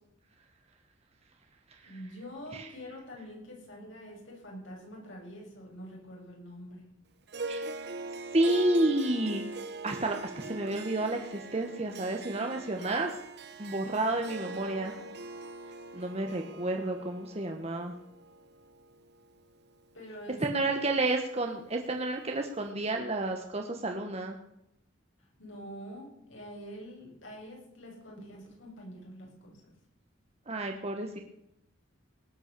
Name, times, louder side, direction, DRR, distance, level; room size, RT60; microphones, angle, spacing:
voice 1, 1.8-6.8 14.2-15.1 19.9-20.8 25.4-29.6, equal, 75° left, -1 dB, 6.6 m, -46 dB
Harp, 7.3-19.8, right 3 dB, 55° right, 1.1 m, -42 dB
voice 2, 8.3-9.4 9.8-13.1 13.6-14.9 15.9-17.9 20.4-24.4 30.5-31.2, right 2 dB, 30° right, 3 dB, 1.2 m, -30 dB
18.5 x 9.5 x 6.7 m, 0.83 s
head